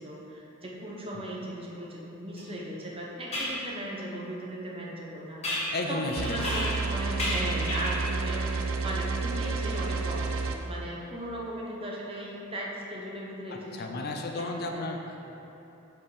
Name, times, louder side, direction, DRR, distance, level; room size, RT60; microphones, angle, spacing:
voice 1, 0.0-10.4 10.6-14.0 14.3-14.8, right 1 dB, 25° right, -3 dB, 0.9 m, -37 dB
sound 1, 2.4-2.5 3.3-3.6 5.4-6.9 7.2-8.1, left 1 dB, 30° left, 1.4 m, -32 dB
voice 2, 5.7-6.6 13.7-15.3, left 2 dB, 50° left, 3 dB, 0.6 m, -34 dB
sound 2, 6.2-10.6, right 4 dB, 75° right, 0.5 m, -30 dB
5.1 x 4.5 x 5.5 m, 2.9 s
head